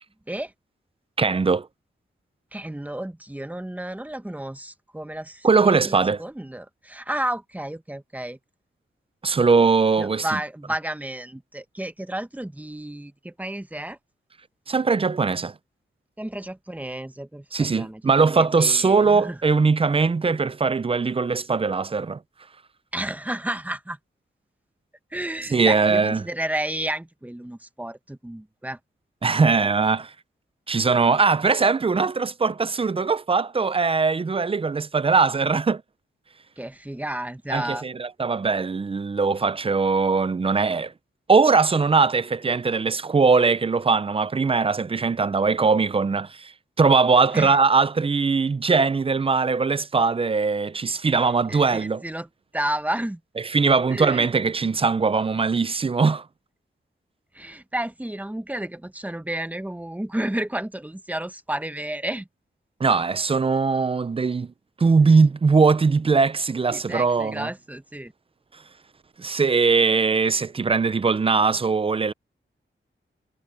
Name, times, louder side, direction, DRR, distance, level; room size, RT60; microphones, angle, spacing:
voice 1, 1.2-1.7 5.4-6.2 9.2-10.4 14.7-15.5 17.5-22.2 25.5-26.2 29.2-30.1 30.7-35.8 37.5-40.9 41.3-46.5 46.8-52.0 53.4-56.2 62.8-64.5 64.8-67.5 69.2-72.1, right 4 dB, 25° right, 0.4 m, -21 dB
voice 2, 2.5-8.4 10.0-14.0 16.2-18.0 18.3-19.4 22.9-24.0 25.1-28.8 36.6-37.8 47.3-47.6 51.2-52.3 52.5-53.2 53.9-54.3 57.3-62.3 66.7-68.1, right 1 dB, 5° right, 0.9 m, -31 dB
wide cardioid pair, 155°, 21 cm